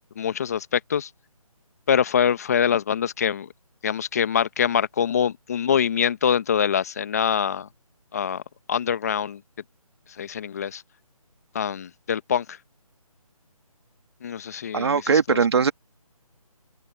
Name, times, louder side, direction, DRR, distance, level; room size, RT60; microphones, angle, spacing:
voice 1, 0.2-1.1 1.9-3.5 3.8-7.7 8.1-8.4 8.7-9.4 10.2-10.8 11.5-12.6 14.2-15.4, left 8 dB, 25° left, 1.2 m, -24 dB
voice 2, 14.7-15.7, right 6 dB, 45° right, 2.3 m, -20 dB
open air
hypercardioid pair, 170°, 19 cm